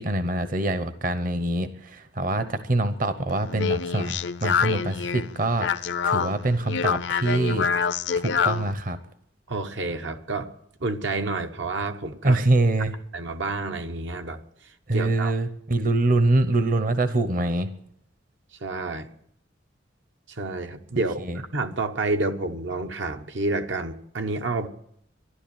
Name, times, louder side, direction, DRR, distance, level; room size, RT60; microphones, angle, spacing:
voice 1, 0.0-7.7 8.2-9.0 12.2-12.9 14.9-17.7 21.2-21.4, right 2 dB, 45° right, 11 dB, 0.9 m, -24 dB
Speech, 3.3-8.7, left 6 dB, 65° left, 0.5 m, -26 dB
voice 2, 9.5-10.5 10.8-12.4 13.1-14.4 14.9-15.4 18.6-19.1 20.3-24.7, right 2 dB, 75° right, 6 dB, 1.0 m, -29 dB
13.0 x 11.5 x 8.8 m, 0.72 s
head